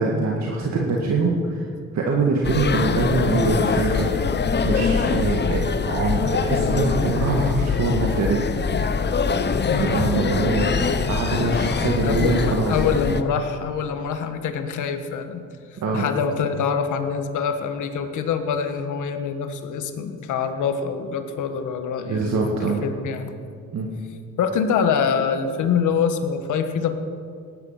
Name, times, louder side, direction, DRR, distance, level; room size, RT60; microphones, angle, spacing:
voice 1, 0.0-1.7 1.9-4.1 4.6-8.4 9.8-12.8 15.8-16.1 22.1-22.8 23.7-23.9, right 3 dB, 60° right, -1 dB, 2.0 m, -23 dB
sound 1, 2.4-13.2, left 5 dB, 35° left, 0.9 m, -23 dB
voice 2, 9.7-10.2 12.0-15.4 15.9-23.3 24.4-27.0, left 6 dB, 80° left, 7 dB, 1.5 m, -25 dB
17.5 x 12.0 x 5.9 m, 2.3 s
cardioid pair, 90°, 30 cm